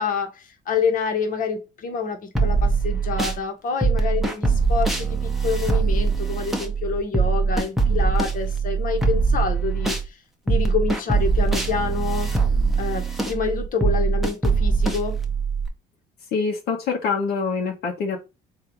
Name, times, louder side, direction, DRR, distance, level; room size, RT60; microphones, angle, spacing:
voice 1, 0.0-10.2 10.4-12.3 12.8-15.2, left 5 dB, 55° left, 3 dB, 1.3 m, -27 dB
sound 1, 2.3-3.4 3.8-10.1 10.5-15.7, right 4 dB, ahead, 0.9 m, -22 dB
voice 2, 16.3-18.2, left 5 dB, 70° left, 0 dB, 1.1 m, -25 dB
3.9 x 2.8 x 4.5 m, 0.27 s
cardioid pair, 110°, 17 cm